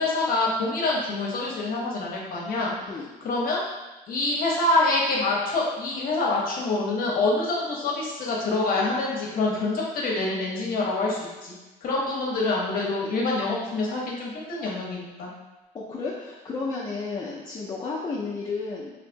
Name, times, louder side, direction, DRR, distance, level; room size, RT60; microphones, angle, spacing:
voice 1, 0.0-2.7 3.2-3.6 4.1-11.5 11.8-15.3, left 2 dB, 55° left, -3 dB, 0.9 m, -26 dB
voice 2, 15.7-18.9, left 4 dB, 30° left, -6 dB, 0.6 m, -32 dB
3.4 x 2.8 x 2.6 m, 1.1 s
cardioid pair, 110°, 17 cm